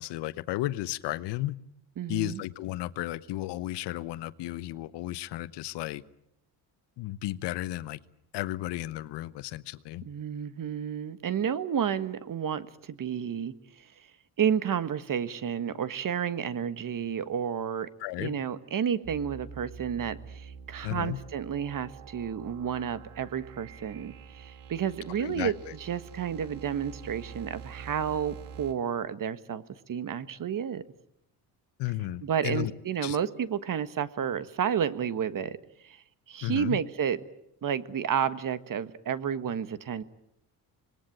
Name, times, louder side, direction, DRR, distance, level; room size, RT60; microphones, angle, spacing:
voice 1, 0.0-1.6 2.1-6.0 7.0-8.0 8.3-10.0 18.0-18.3 20.8-21.2 25.2-25.7 31.8-32.7 33.0-33.2 36.4-36.8, left 16 dB, 80° left, 15 dB, 1.0 m, -33 dB
voice 2, 2.0-2.4 10.0-13.5 14.4-17.9 18.2-25.5 25.8-29.6 29.9-30.8 32.2-35.6 35.8-36.0 36.3-37.2 37.6-40.0, right 8 dB, 50° right, 13 dB, 1.5 m, -31 dB
sound 1, 19.0-28.7, right 6 dB, 90° right, 2.6 m, -46 dB
26.0 x 20.5 x 8.8 m, 0.78 s
supercardioid pair, 75°, 41 cm